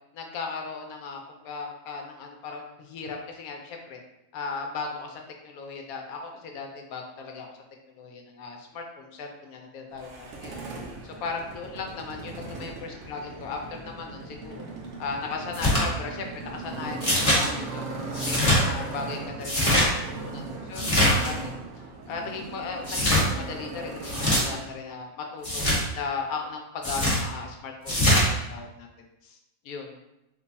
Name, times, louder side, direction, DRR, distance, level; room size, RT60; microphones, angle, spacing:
voice 1, 0.1-4.0 4.3-7.5 7.9-10.6 11.0-14.6 15.0-17.8 18.2-19.9 20.2-21.6 22.1-25.6 25.9-28.9 29.2-29.4 29.6-30.0, left 4 dB, 90° left, 2 dB, 1.1 m, -37 dB
Motorcycle, 9.9-24.6, right 3 dB, 65° right, 0.9 m, -38 dB
sound 1, 15.5-15.8 17.0-17.4 18.1-18.6 19.4-19.9 20.7-21.3 22.8-23.3 24.0-24.4 25.4-25.8 26.8-27.2 27.9-28.3, left 1 dB, 25° left, 1.1 m, -22 dB
3.1 x 2.3 x 4.0 m, 0.91 s
omnidirectional pair, 1.5 m